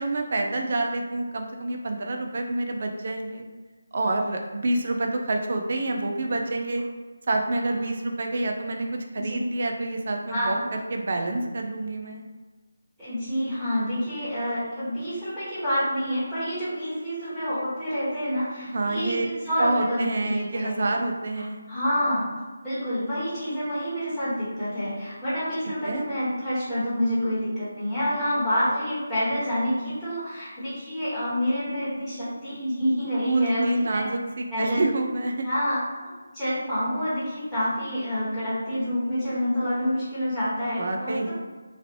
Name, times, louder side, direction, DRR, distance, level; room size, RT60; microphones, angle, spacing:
voice 1, 0.0-3.4 3.9-6.8 7.3-12.2 18.7-19.3 19.6-21.6 25.8-26.0 33.3-35.5 40.8-41.3, right 2 dB, 50° right, 3 dB, 0.4 m, -27 dB
voice 2, 10.3-10.6 13.0-20.8 21.3-33.6 33.9-34.0 34.5-34.8 35.4-41.3, equal, 5° right, -17 dB, 1.3 m, -28 dB
3.1 x 2.5 x 2.9 m, 1.3 s
figure-of-eight pair, 160°, 0 cm